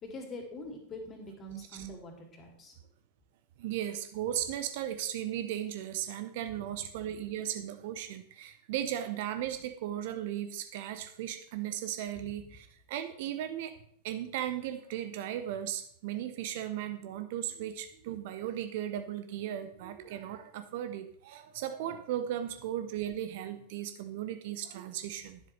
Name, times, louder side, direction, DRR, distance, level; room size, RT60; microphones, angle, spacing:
voice 1, 0.0-2.7, left 1 dB, 25° left, 2 dB, 2.8 m, -44 dB
voice 2, 3.6-13.7 14.0-25.4, right 11 dB, 50° right, 9 dB, 0.9 m, -36 dB
11.5 x 10.5 x 3.3 m, 0.63 s
figure-of-eight pair, 90°, 0 cm